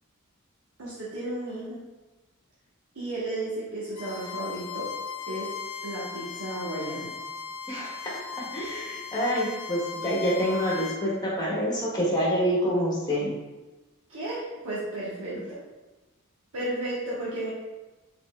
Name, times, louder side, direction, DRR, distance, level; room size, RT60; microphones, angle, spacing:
voice 1, 0.8-1.8 2.9-4.9 5.2-5.5 5.8-7.1 14.1-15.4 16.5-17.5, right 1 dB, 85° right, -9 dB, 1.2 m, -33 dB
Bowed string instrument, 3.9-11.0, left 6 dB, 70° left, 0.4 m, -38 dB
voice 2, 8.5-13.3 15.3-15.4, equal, 20° left, -5 dB, 1.2 m, -27 dB
5.0 x 4.1 x 2.3 m, 1.1 s
head